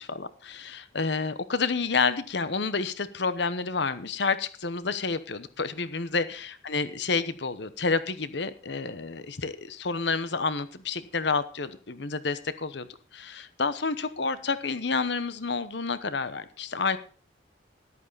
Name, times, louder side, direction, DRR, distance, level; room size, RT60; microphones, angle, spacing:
voice 1, 0.0-12.9 13.1-17.0, left 4 dB, 65° left, 14 dB, 1.0 m, -29 dB
14.0 x 11.5 x 4.0 m, 0.38 s
head